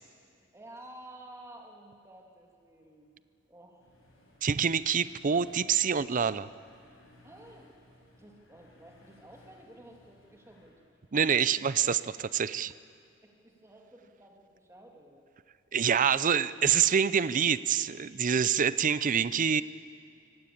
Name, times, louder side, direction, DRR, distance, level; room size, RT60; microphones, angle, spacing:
voice 1, 0.4-3.2 3.5-3.9 7.2-7.7 8.2-10.8 13.2-15.3, right 1 dB, 15° right, 1 dB, 2.9 m, -52 dB
sound 1, 3.8-10.7, left 1 dB, 80° left, 7.0 m, -60 dB
voice 2, 4.4-6.5 11.1-12.7 15.7-19.6, right 7 dB, 40° right, 16 dB, 0.5 m, -26 dB
24.5 x 18.0 x 8.7 m, 2.4 s
head